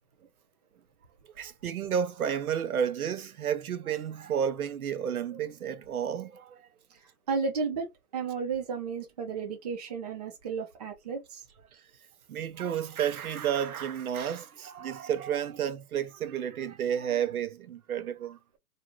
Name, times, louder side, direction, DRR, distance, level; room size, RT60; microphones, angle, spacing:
voice 1, 1.3-6.7 11.7-11.8 12.3-18.6, right 8 dB, 70° right, 0.7 m, -31 dB
voice 2, 7.3-11.4, right 5 dB, 25° right, 0.5 m, -33 dB
2.6 x 2.4 x 2.9 m
hypercardioid pair, 155°, 45 cm